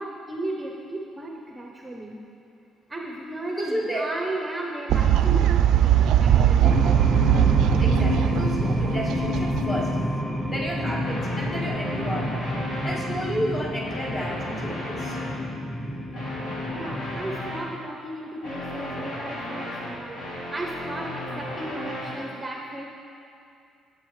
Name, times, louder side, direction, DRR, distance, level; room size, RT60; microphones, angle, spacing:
voice 1, 0.0-2.2 2.9-6.9 16.7-22.9, right 1 dB, 10° right, 0 dB, 0.7 m, -35 dB
voice 2, 3.6-4.1 7.8-10.0 10.4-12.5 12.8-15.2, right 1 dB, 25° left, -4 dB, 1.9 m, -31 dB
Fowl, 4.9-10.2, right 10 dB, 70° right, 0.4 m, -20 dB
sound 1, 6.6-17.5, left 1 dB, 5° left, 1.0 m, -28 dB
sound 2, 11.0-13.0 13.7-15.3 16.1-17.7 18.4-22.2, left 1 dB, 70° left, 2.6 m, -35 dB
17.0 x 7.9 x 3.2 m, 2.5 s
cardioid pair, 145°, 0 cm